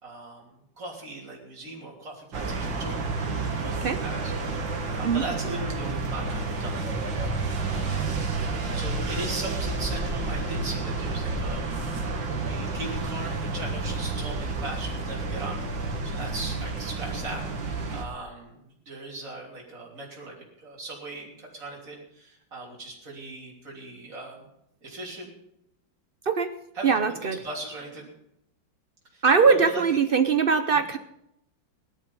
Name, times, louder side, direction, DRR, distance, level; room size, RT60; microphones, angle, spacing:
voice 1, 0.0-3.0 3.4-4.3 4.9-6.8 7.6-8.2 8.7-11.7 12.5-17.4 17.9-20.3 20.6-24.4 24.8-25.3 26.7-26.9 27.3-28.1 29.1-29.8 30.7-30.9, right 2 dB, 45° right, -3 dB, 3.8 m, -39 dB
sound 1, 2.3-18.0, right 3 dB, 85° right, 2.5 m, -30 dB
voice 2, 26.8-27.4 29.2-31.0, right 5 dB, 60° right, 9 dB, 0.5 m, -21 dB
17.0 x 12.0 x 5.4 m, 0.79 s
omnidirectional pair, 2.0 m